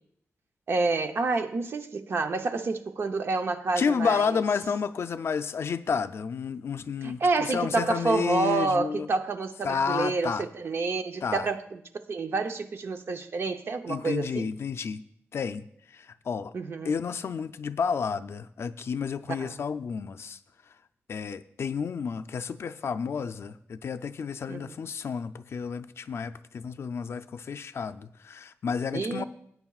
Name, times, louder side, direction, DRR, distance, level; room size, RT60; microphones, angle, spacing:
voice 1, 0.7-4.4 7.0-14.5 16.5-16.9 19.4-19.5 24.5-24.7 28.9-29.3, right 3 dB, 55° right, 0.7 m, -29 dB
voice 2, 3.8-9.1 9.6-10.5 11.2-11.5 13.9-15.0 15.3-16.5 16.8-20.4 21.1-29.3, left 6 dB, 60° left, 0.4 m, -31 dB
19.0 x 9.4 x 2.4 m
wide cardioid pair, 155°, 5 cm